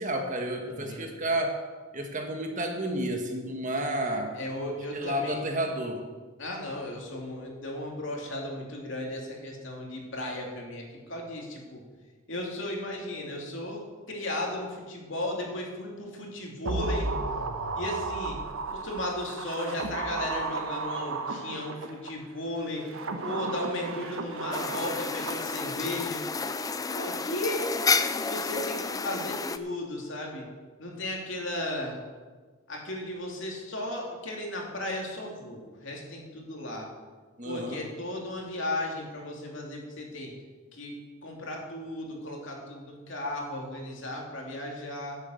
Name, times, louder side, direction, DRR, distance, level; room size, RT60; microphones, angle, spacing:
voice 1, 0.0-1.6 1.9-4.3 4.9-6.1 37.4-37.8, right 1 dB, 35° right, 3 dB, 1.5 m, -31 dB
voice 2, 0.7-1.0 4.3-5.4 6.4-11.8 12.3-17.1 17.7-18.4 18.7-22.8 23.2-26.2 26.9-27.7 28.2-30.4 30.8-32.0 32.7-36.9 37.4-40.3 40.7-45.2, left 1 dB, 60° left, -1 dB, 2.9 m, -35 dB
sound 1, 16.7-22.1 22.7-26.0 26.3-26.4, right 3 dB, 80° right, 1.0 m, -34 dB
sound 2, 24.5-29.6, left 4 dB, 15° left, 0.4 m, -30 dB
11.0 x 8.1 x 7.8 m, 1.4 s
head